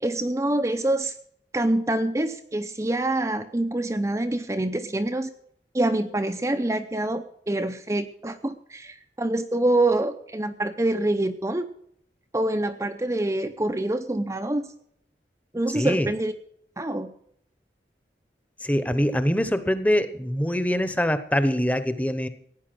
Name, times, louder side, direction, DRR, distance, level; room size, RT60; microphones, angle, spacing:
voice 1, 0.0-1.1 1.5-5.3 5.7-11.7 12.3-14.7 15.5-16.3 16.8-17.1, right 1 dB, 15° right, 7 dB, 0.6 m, -26 dB
voice 2, 15.7-16.1 18.6-22.3, equal, 10° left, 11 dB, 0.9 m, -24 dB
16.5 x 9.7 x 6.1 m, 0.69 s
head